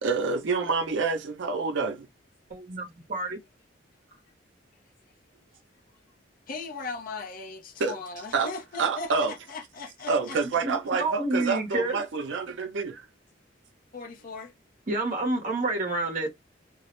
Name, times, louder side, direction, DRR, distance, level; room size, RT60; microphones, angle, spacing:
voice 1, 0.0-2.1 7.8-8.0 8.3-8.5 8.8-9.3 10.1-13.0, right 4 dB, 75° right, 0.5 m, -27 dB
voice 2, 2.5-3.4 10.6-12.0 14.9-16.3, right 2 dB, 45° right, 0.8 m, -29 dB
voice 3, 6.5-10.4 13.9-14.5, left 3 dB, 50° left, 0.5 m, -38 dB
2.3 x 2.0 x 2.8 m
head